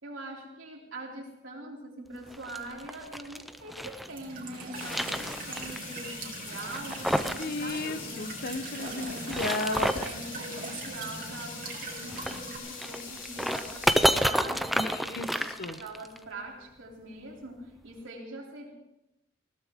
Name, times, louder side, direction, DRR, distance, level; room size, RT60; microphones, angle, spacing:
voice 1, 0.0-8.3 8.9-9.4 9.8-18.7, right 1 dB, 75° right, 0 dB, 3.3 m, -43 dB
sound 1, 2.3-4.1 4.5-5.8 6.0-6.1 6.7-7.5 7.7-7.8 9.1-10.2 12.1-16.2, equal, ahead, 0.6 m, -30 dB
Walk footsteps / Chirp tweet / Stream, 4.1-12.6, right 3 dB, 45° right, 2.7 m, -41 dB
sound 2, 4.7-14.2, left 5 dB, 70° left, 3.7 m, -43 dB
voice 2, 7.4-10.0 14.7-15.8, left 2 dB, 50° left, 10 dB, 0.9 m, -34 dB
20.0 x 17.0 x 3.7 m, 0.88 s
head